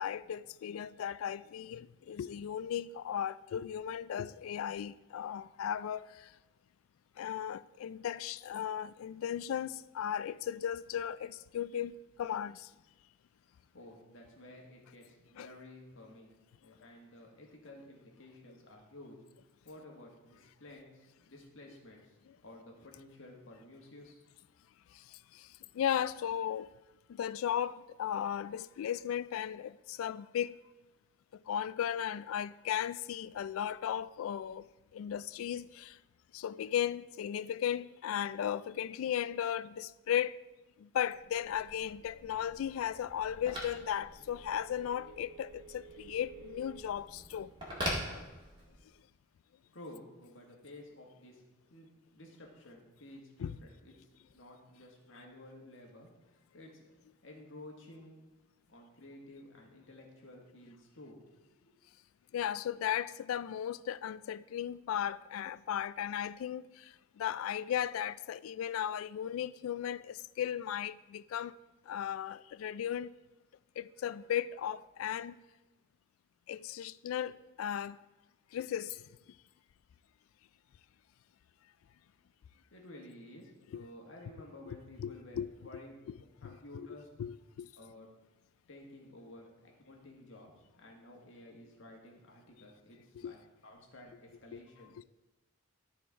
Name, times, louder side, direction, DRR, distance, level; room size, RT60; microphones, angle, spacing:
voice 1, 0.0-6.3 7.2-12.7 15.4-15.5 24.9-25.5 25.7-26.7 27.1-30.6 31.5-34.6 34.9-36.0 36.3-40.4 40.8-47.5 48.1-48.2 53.4-53.5 62.3-71.6 71.9-73.1 73.8-75.4 76.5-78.0 78.5-79.0 83.7-83.9 84.7-85.5 86.1-86.2 86.4-86.9 87.2-87.7 93.2-93.3 94.5-94.6, left 9 dB, 85° left, 0.3 m, -36 dB
voice 2, 13.7-16.3 16.6-19.2 19.6-24.2 49.7-51.4 51.7-56.9 57.2-58.3 58.7-61.2 61.6-61.7 82.7-86.0 86.4-87.1 87.8-88.1 88.7-94.9, left 1 dB, 70° left, 1.7 m, -53 dB
Telephone, 41.0-48.9, equal, 25° right, 1.9 m, -44 dB
13.0 x 4.4 x 4.8 m
head